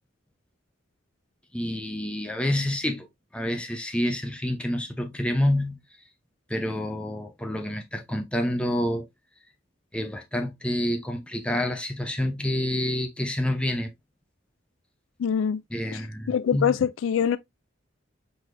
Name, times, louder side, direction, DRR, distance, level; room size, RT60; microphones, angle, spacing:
voice 1, 1.5-3.1 3.3-5.8 6.5-9.1 9.9-13.9 15.7-16.8, left 1 dB, 5° left, 0.7 m, -28 dB
voice 2, 15.2-15.6 15.9-16.0 16.3-17.4, left 8 dB, 75° left, 0.3 m, -24 dB
4.9 x 3.9 x 2.6 m
head